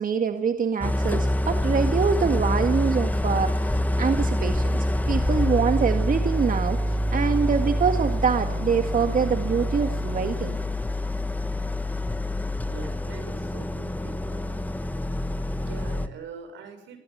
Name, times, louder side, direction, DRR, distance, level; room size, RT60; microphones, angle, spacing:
voice 1, 0.0-3.5 4.0-4.8 5.1-10.6, right 6 dB, 45° right, 7 dB, 1.8 m, -25 dB
Idling, 0.8-16.1, left 1 dB, 10° left, 1.6 m, -26 dB
voice 2, 12.7-14.6 15.5-17.0, right 5 dB, 80° right, 8 dB, 6.7 m, -42 dB
21.5 x 19.5 x 9.8 m, 0.80 s
cardioid pair, 80°, 19 cm